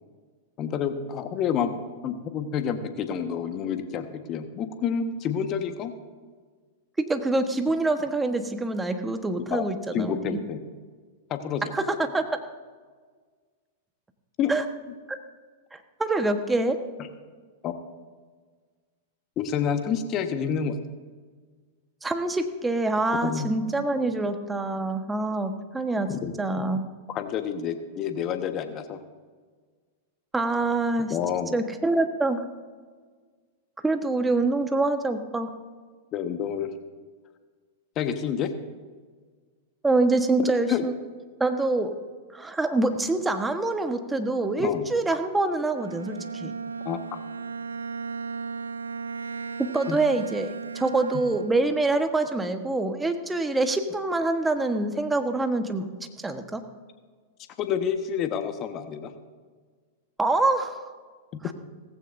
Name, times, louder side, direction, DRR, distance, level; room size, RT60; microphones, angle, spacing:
voice 1, 0.6-1.8 2.0-5.9 9.5-10.6 11.3-11.6 14.4-14.5 17.0-17.1 17.6-17.7 19.4-20.8 23.2-23.5 26.1-26.6 27.1-29.0 31.1-31.6 36.1-36.7 38.0-38.5 40.4-40.8 44.6-44.8 46.8-47.0 49.9-50.0 57.6-59.1, left 7 dB, 40° left, 8 dB, 1.3 m, -28 dB
voice 2, 7.0-10.4 11.7-12.2 14.5-14.6 15.1-15.2 15.7-16.8 22.0-26.1 26.4-26.8 30.3-31.2 31.5-32.4 33.8-35.5 39.8-40.9 41.4-41.9 42.3-46.5 49.6-50.5 50.7-55.9 56.2-56.6 60.2-60.8 61.4-61.5, right 2 dB, 10° right, 7 dB, 1.2 m, -25 dB
Bowed string instrument, 45.7-51.8, right 5 dB, 90° right, 0.4 m, -36 dB
17.5 x 15.5 x 2.6 m, 1.5 s
hypercardioid pair, 105°, 0 cm